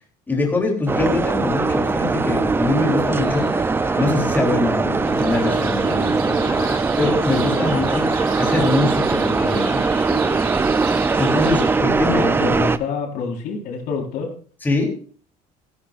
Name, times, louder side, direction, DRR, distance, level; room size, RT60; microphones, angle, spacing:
voice 1, 0.3-3.5 3.9-8.1 8.4-9.8 11.2-12.2 14.6-15.0, left 3 dB, 10° left, 0 dB, 3.2 m, -23 dB
sound 1, 0.9-12.8, right 4 dB, 15° right, 0.5 m, -21 dB
sound 2, 2.8-10.9, left 7 dB, 60° left, 4.4 m, -37 dB
sound 3, 5.0-11.8, right 7 dB, 80° right, 3.8 m, -36 dB
voice 2, 12.1-14.3, left 4 dB, 75° left, 1 dB, 4.3 m, -26 dB
16.5 x 16.0 x 2.5 m, 0.43 s
cardioid pair, 150°, 16 cm